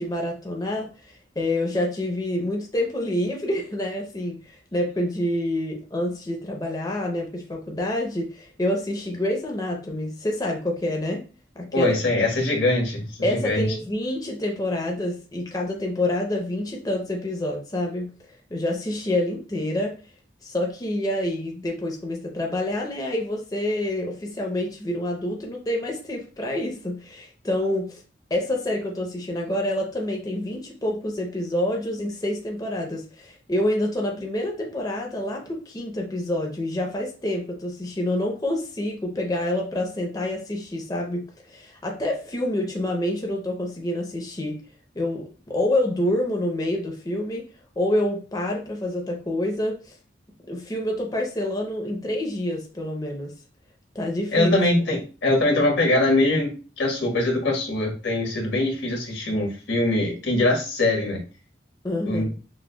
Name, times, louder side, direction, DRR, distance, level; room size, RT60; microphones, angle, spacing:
voice 1, 0.0-11.2 11.6-11.9 13.2-18.1 18.5-20.0 20.4-28.0 28.3-44.6 45.0-47.4 47.8-49.9 50.5-53.3 53.9-54.6 54.9-55.0 61.8-62.2, left 1 dB, 20° left, 1 dB, 0.6 m, -27 dB
voice 2, 11.7-13.7 54.3-61.2 62.0-62.3, left 2 dB, 90° left, -1 dB, 1.4 m, -22 dB
6.0 x 2.2 x 2.2 m, 0.35 s
head